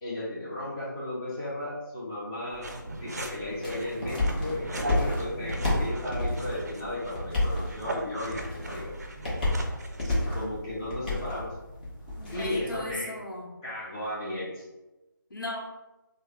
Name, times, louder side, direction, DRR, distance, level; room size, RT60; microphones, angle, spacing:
voice 1, 0.0-2.7 3.0-8.9 10.3-11.5 12.3-13.1 13.6-14.6, left 1 dB, 10° left, -8 dB, 0.5 m, -35 dB
sound 1, 2.5-13.0, left 1 dB, 25° left, 0.9 m, -32 dB
sound 2, 2.6-10.2, right 1 dB, 50° right, 0.5 m, -39 dB
voice 2, 12.2-13.5 15.3-15.6, left 2 dB, 70° left, -1 dB, 1.0 m, -37 dB
3.4 x 2.1 x 3.3 m, 1.1 s
figure-of-eight pair, 165°, 11 cm